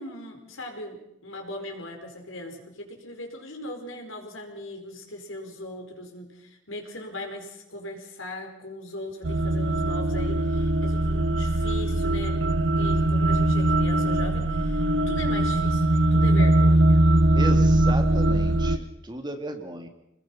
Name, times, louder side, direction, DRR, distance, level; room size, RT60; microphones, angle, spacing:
voice 1, 0.0-17.0, left 1 dB, 85° left, 3 dB, 4.8 m, -39 dB
sound 1, 9.2-18.8, right 1 dB, 70° right, 1.1 m, -21 dB
voice 2, 17.3-19.9, right 1 dB, 20° right, 5 dB, 2.2 m, -34 dB
26.5 x 20.5 x 5.8 m, 0.80 s
head